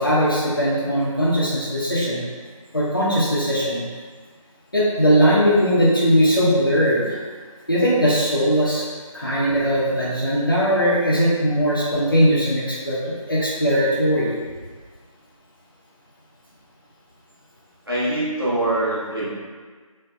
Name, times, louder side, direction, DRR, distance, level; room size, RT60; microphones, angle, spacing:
voice 1, 0.0-2.2 2.7-3.8 4.7-7.2 7.7-8.8 9.1-14.3, equal, 40° left, -7 dB, 0.9 m, -19 dB
voice 2, 17.9-19.2, right 1 dB, 40° right, -9 dB, 1.3 m, -23 dB
3.6 x 3.5 x 3.4 m, 1.5 s
figure-of-eight pair, 180°, 18 cm